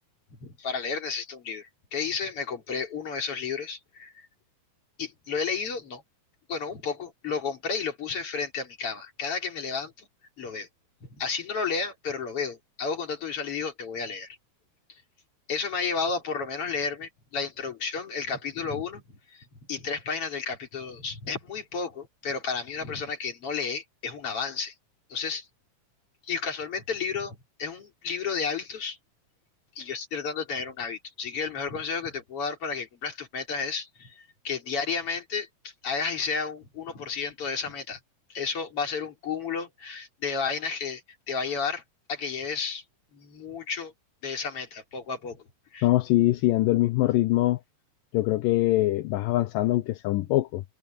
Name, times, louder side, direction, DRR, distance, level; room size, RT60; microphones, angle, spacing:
voice 1, 0.3-4.1 5.0-6.0 6.5-10.1 10.4-10.7 11.0-14.4 15.5-24.7 25.1-25.5 26.2-29.0 29.8-34.1 34.4-38.0 38.3-41.0 41.3-41.8 42.1-42.8 43.1-43.9 44.2-45.4 45.7-45.9, left 5 dB, 40° left, 4.1 m, -32 dB
voice 2, 45.8-47.6 48.1-50.6, left 16 dB, 80° left, 2.4 m, -23 dB
omnidirectional pair, 4.0 m